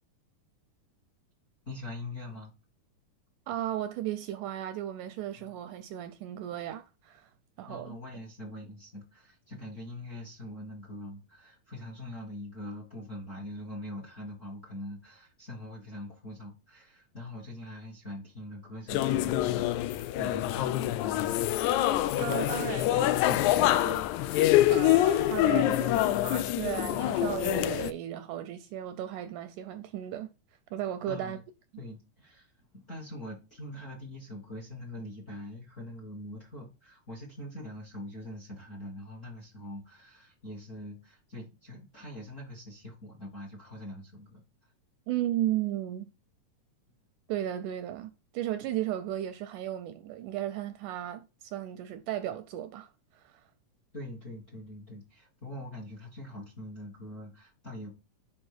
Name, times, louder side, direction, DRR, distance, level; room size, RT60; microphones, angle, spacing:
voice 1, 1.6-2.5 5.3-5.5 7.7-21.4 31.1-31.4 31.8-44.4 53.9-57.9, left 1 dB, 35° left, 1.3 m, -43 dB
voice 2, 3.5-7.3 7.6-8.0 22.2-30.3 30.7-31.4 45.1-46.1 47.3-53.4, right 12 dB, 80° right, 1.9 m, -35 dB
sound 1, 18.9-27.9, left 14 dB, 90° left, 1.6 m, -26 dB
5.4 x 5.0 x 4.8 m
omnidirectional pair, 3.9 m